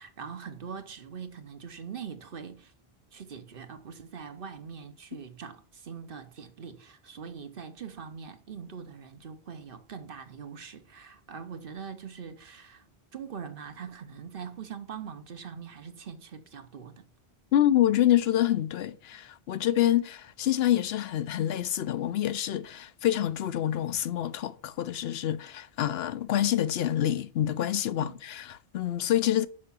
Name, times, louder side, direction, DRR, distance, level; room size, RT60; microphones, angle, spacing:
voice 1, 0.0-2.7 3.1-12.8 13.1-17.0 28.0-28.2, right 6 dB, 60° right, 1.0 m, -42 dB
voice 2, 17.5-29.5, left 12 dB, 75° left, 0.8 m, -27 dB
6.6 x 5.7 x 7.0 m
omnidirectional pair, 1.0 m